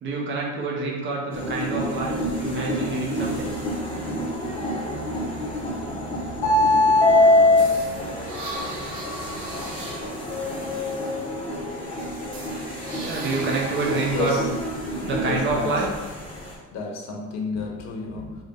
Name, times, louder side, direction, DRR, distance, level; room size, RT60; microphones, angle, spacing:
voice 1, 0.0-3.5 11.4-11.5 13.0-14.5 15.0-15.9, right 3 dB, 40° right, -2 dB, 0.7 m, -27 dB
sound 1, 1.3-16.5, left 1 dB, 20° left, 0.7 m, -25 dB
sound 2, 7.6-11.5 12.0-14.4, right 2 dB, 85° right, 0.9 m, -38 dB
voice 2, 14.1-14.5 15.2-15.9 16.7-18.4, left 2 dB, 65° left, 1 dB, 0.7 m, -30 dB
3.5 x 2.1 x 3.5 m, 1.1 s
cardioid pair, 165°, 30 cm